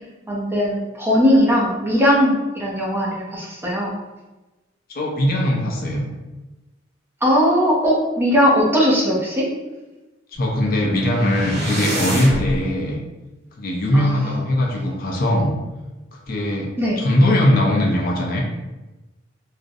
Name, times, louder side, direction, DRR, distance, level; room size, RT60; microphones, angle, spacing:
voice 1, 0.3-3.9 7.2-9.5 13.9-14.1 16.8-17.0, equal, 10° right, -4 dB, 0.4 m, -19 dB
voice 2, 4.9-6.1 10.3-13.0 13.6-15.5 16.1-16.7 17.0-18.4, left 1 dB, 50° left, -1 dB, 0.4 m, -20 dB
sound 1, 10.4-12.6, right 1 dB, 55° right, 1.0 m, -27 dB
2.4 x 2.0 x 2.6 m, 1.1 s
head